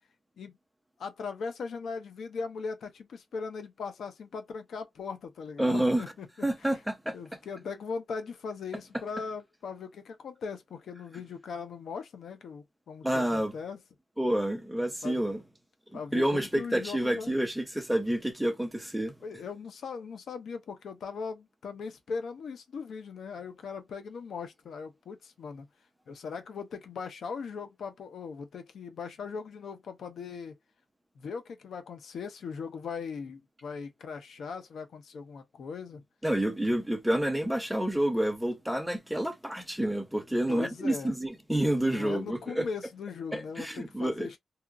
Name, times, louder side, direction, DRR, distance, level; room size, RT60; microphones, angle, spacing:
voice 1, 1.0-6.8 7.1-13.8 15.0-15.3 15.9-17.4 19.2-25.7 26.1-30.5 31.2-36.0 40.5-41.1 41.8-44.4, left 5 dB, 85° left, 0.6 m, -39 dB
voice 2, 5.6-6.0 6.4-7.2 13.0-13.5 14.2-15.4 15.9-19.1 36.2-42.7 43.3-44.4, right 1 dB, 5° right, 0.6 m, -29 dB
2.8 x 2.4 x 2.4 m
wide cardioid pair, 120°, 0 cm